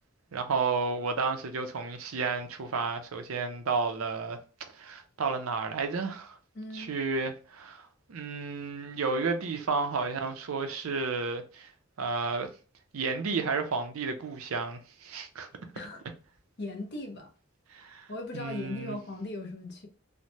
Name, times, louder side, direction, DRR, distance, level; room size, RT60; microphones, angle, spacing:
voice 1, 0.3-4.4 4.8-6.4 6.7-11.7 12.0-12.5 12.9-15.5 17.7-18.1 18.3-19.0, right 4 dB, 90° right, 0.5 m, -32 dB
voice 2, 6.5-6.9 15.7-16.0 16.6-17.3 18.1-19.9, left 2 dB, 50° left, 0.7 m, -38 dB
3.2 x 2.1 x 2.7 m
head